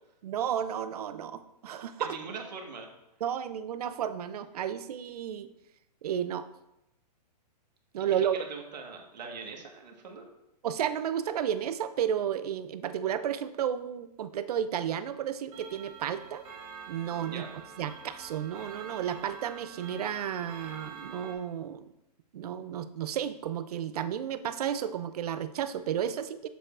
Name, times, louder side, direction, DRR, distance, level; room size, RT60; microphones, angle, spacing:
voice 1, 0.2-2.2 3.2-5.5 6.0-6.5 7.9-8.4 10.6-16.4 16.9-17.5 17.8-21.9 22.3-26.5, right 9 dB, 65° right, 12 dB, 0.5 m, -32 dB
voice 2, 2.0-2.9 8.1-10.3 17.3-17.5, right 5 dB, 80° right, 2 dB, 1.5 m, -42 dB
Clock, 15.5-21.3, right 6 dB, 30° right, 1.5 m, -46 dB
7.5 x 6.9 x 2.5 m, 0.88 s
hypercardioid pair, 155°, 21 cm